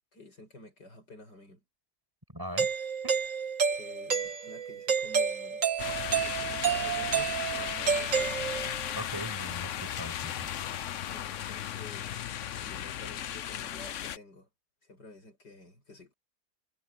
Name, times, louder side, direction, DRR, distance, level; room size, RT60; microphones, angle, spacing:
voice 1, 0.1-1.6 3.7-5.7 6.2-8.4 10.9-12.3 12.6-14.5 14.8-16.1, left 2 dB, 75° left, 8.3 m, -50 dB
voice 2, 2.3-2.7 3.0-3.2 8.9-10.5, equal, 10° right, 7.2 m, -40 dB
Doorbell, 2.6-8.9, right 6 dB, 50° right, 1.8 m, -30 dB
sound 1, 5.8-14.2, left 10 dB, 60° left, 0.9 m, -36 dB
omnidirectional pair, 1.8 m